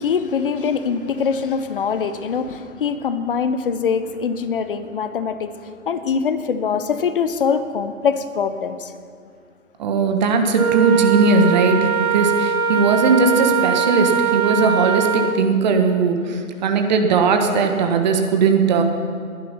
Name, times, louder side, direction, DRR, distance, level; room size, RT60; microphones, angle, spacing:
voice 1, 0.0-8.9, left 6 dB, 40° left, 11 dB, 0.9 m, -23 dB
voice 2, 9.8-18.8, right 4 dB, 30° right, 5 dB, 1.4 m, -18 dB
Wind instrument woodwind instrument, 10.6-15.4, right 7 dB, 85° right, 0.9 m, -21 dB
21.0 x 11.0 x 5.8 m, 2.1 s
figure-of-eight pair, 140°, 42 cm